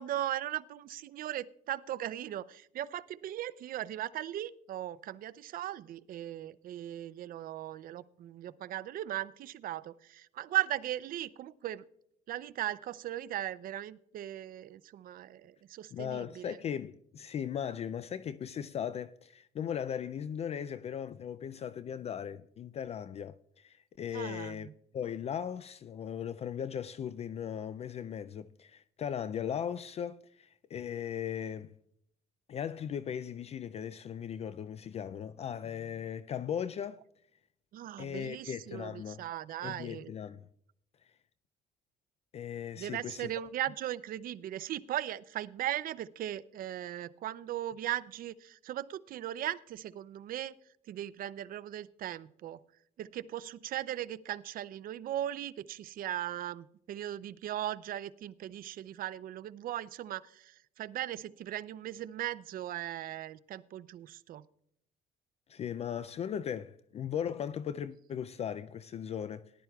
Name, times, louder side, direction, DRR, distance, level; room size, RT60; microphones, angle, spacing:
voice 1, 0.0-11.8 12.3-16.6 24.1-24.7 37.7-40.1 42.8-50.5 50.9-52.6 53.0-64.4, right 12 dB, 55° right, 0.5 m, -38 dB
voice 2, 15.9-24.7 24.9-31.7 32.5-37.0 38.0-39.2 39.6-40.4 42.3-43.3 65.5-69.5, left 8 dB, 40° left, 0.4 m, -38 dB
18.5 x 11.0 x 2.3 m
cardioid pair, 110°, 17 cm